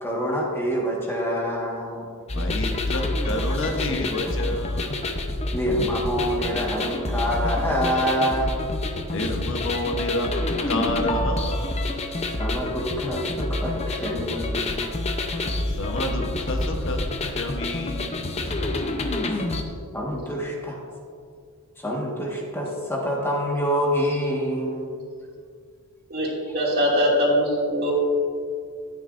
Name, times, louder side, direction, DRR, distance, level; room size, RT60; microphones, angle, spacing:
voice 1, 0.0-2.1 5.5-8.7 9.2-9.3 12.4-15.0 19.2-19.5 19.9-20.8 21.8-24.9, equal, 10° left, -3 dB, 1.5 m, -26 dB
voice 2, 2.3-5.0 9.1-11.7 15.8-18.4, left 1 dB, 60° left, 3 dB, 1.0 m, -29 dB
old skool Elektrokid, 2.3-19.6, left 2 dB, 30° left, 0.7 m, -27 dB
voice 3, 26.1-27.9, equal, 45° right, -4 dB, 2.4 m, -22 dB
14.5 x 9.3 x 2.6 m, 2.2 s
head